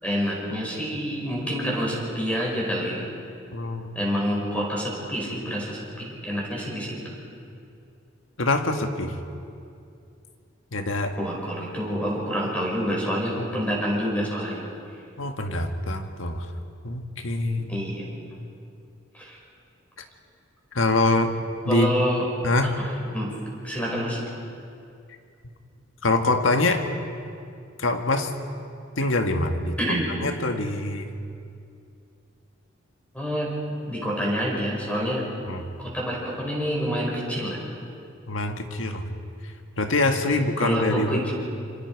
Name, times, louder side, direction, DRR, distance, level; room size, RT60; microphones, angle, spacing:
voice 1, 0.0-3.1 3.9-7.1 11.2-14.6 17.7-18.0 19.1-19.4 21.7-22.2 22.6-22.9 23.1-23.3 23.6-24.2 29.8-30.1 33.1-33.5 33.9-35.3 35.8-37.6 40.3-41.3, equal, 5° left, -3 dB, 5.0 m, -27 dB
voice 2, 3.5-4.0 8.4-9.1 10.7-11.2 15.2-16.5 16.8-17.8 20.0-20.1 20.7-21.3 21.6-21.9 22.4-22.8 26.0-26.8 27.8-28.3 29.0-29.8 30.2-31.1 35.5-35.6 38.3-39.1 39.4-41.2, left 2 dB, 80° left, 6 dB, 1.7 m, -24 dB
27.0 x 25.0 x 4.7 m, 2.5 s
head